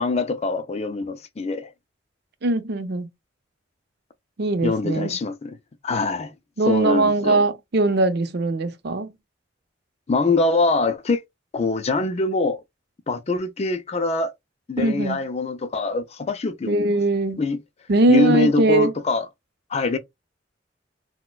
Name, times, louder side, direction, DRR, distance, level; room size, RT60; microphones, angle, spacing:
voice 1, 0.0-1.7 4.6-5.6 5.8-6.3 6.7-7.4 10.1-11.2 11.5-12.6 13.1-14.3 14.7-17.0 17.4-17.6 18.1-19.3 19.7-20.0, left 3 dB, 35° left, 0.4 m, -23 dB
voice 2, 2.4-3.1 4.4-5.1 6.6-9.1 14.8-15.2 16.7-17.4 17.9-18.9, right 2 dB, 65° right, 0.6 m, -21 dB
4.1 x 2.1 x 2.2 m
head